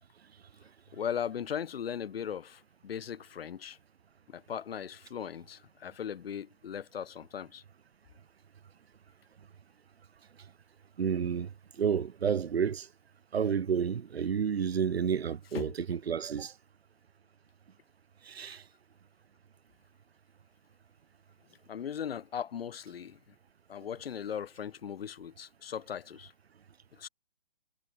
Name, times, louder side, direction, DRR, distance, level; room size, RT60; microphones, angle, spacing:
voice 1, 0.9-3.8 4.3-7.6 15.5-16.0 21.7-23.3 23.7-26.3 26.9-27.1, left 8 dB, 70° left, 0.5 m, -38 dB
voice 2, 11.0-12.9 13.3-16.5 18.2-18.6, right 7 dB, 85° right, 0.6 m, -30 dB
figure-of-eight pair, 135°, 30 cm